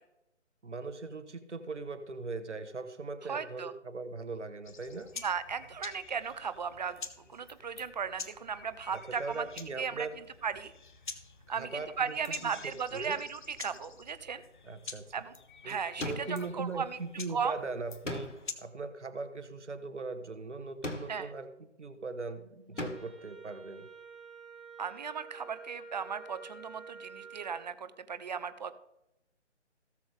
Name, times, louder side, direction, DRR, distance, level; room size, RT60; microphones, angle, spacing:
voice 1, 0.6-5.1 8.9-10.2 11.5-12.5 12.9-13.2 14.6-15.1 15.6-21.5 21.8-23.9, right 3 dB, 70° right, 11 dB, 1.5 m, -40 dB
voice 2, 3.3-3.7 5.2-7.0 7.3-9.4 9.8-10.1 10.4-10.7 11.5-14.4 15.1-15.3 15.6-17.0 17.3-17.5 21.1-21.3 24.8-28.7, right 6 dB, 35° right, 12 dB, 0.8 m, -36 dB
sound 1, 4.6-18.5, left 5 dB, 40° left, 1.1 m, -48 dB
sound 2, 16.0-16.6 18.0-18.6 20.8-21.4 22.8-23.2, left 2 dB, 90° left, 1.8 m, -39 dB
Wind instrument woodwind instrument, 22.7-27.6, right 5 dB, 5° right, 2.0 m, -49 dB
17.5 x 7.0 x 3.6 m, 0.87 s
figure-of-eight pair, 150°, 36 cm